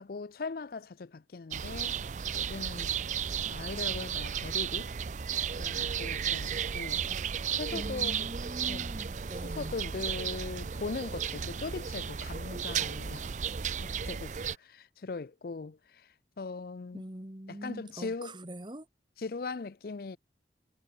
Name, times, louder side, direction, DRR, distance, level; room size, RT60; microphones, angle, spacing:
voice 1, 0.0-2.0 2.4-2.9 3.5-4.9 5.6-7.1 7.5-8.3 8.7-8.9 9.4-13.3 13.8-17.0 17.5-18.4 19.2-20.2, left 4 dB, 55° left, 0.5 m, -40 dB
sound 1, 1.5-14.6, right 7 dB, 40° right, 0.5 m, -34 dB
voice 2, 7.7-9.8 16.9-18.9, right 1 dB, 25° right, 1.6 m, -43 dB
head